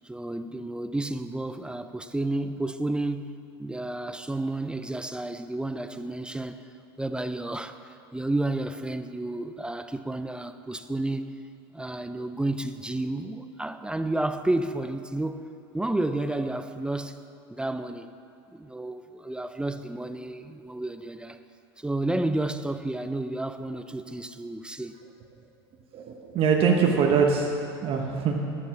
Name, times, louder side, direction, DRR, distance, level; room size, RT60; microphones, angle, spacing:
voice 1, 0.0-3.3 3.6-6.6 7.0-11.2 11.7-15.4 15.7-17.2 17.5-18.1 18.5-21.4 21.8-25.0, right 2 dB, 5° right, 9 dB, 0.5 m, -31 dB
voice 2, 25.9-27.5 27.8-28.4, right 6 dB, 45° right, 1 dB, 1.1 m, -23 dB
11.0 x 7.3 x 5.7 m, 2.5 s
hypercardioid pair, 80°, 13 cm